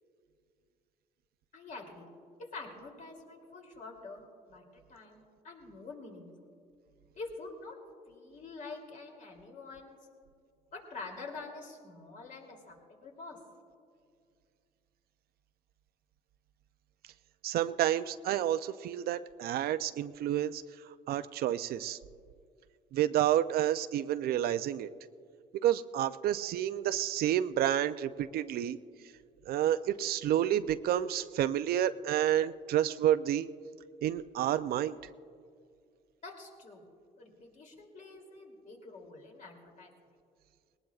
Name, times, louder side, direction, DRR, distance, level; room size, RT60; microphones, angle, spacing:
voice 1, 1.5-2.1 2.4-6.3 7.1-7.8 8.1-10.0 10.7-13.4 36.2-36.8 37.2-39.9, left 3 dB, 50° left, 1 dB, 2.9 m, -46 dB
voice 2, 17.4-20.6 21.1-22.0 22.9-24.9 25.5-28.8 29.5-33.5 34.0-35.0, right 11 dB, 65° right, 12 dB, 0.5 m, -29 dB
20.0 x 19.0 x 2.4 m, 2.3 s
cardioid pair, 110°, 17 cm